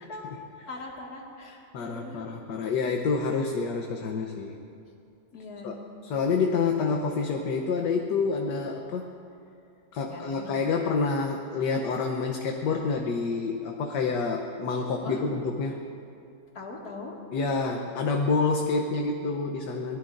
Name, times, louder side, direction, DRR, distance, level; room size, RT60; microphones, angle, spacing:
voice 1, 0.0-2.2 5.3-5.7 10.1-10.5 15.0-15.2 16.5-17.1, left 3 dB, 55° left, -2 dB, 2.5 m, -41 dB
voice 2, 1.7-4.5 5.6-5.7 6.0-9.1 9.9-15.8 17.3-20.0, left 4 dB, 70° left, 2 dB, 1.5 m, -28 dB
24.0 x 20.0 x 2.6 m, 2.6 s
omnidirectional pair, 2.0 m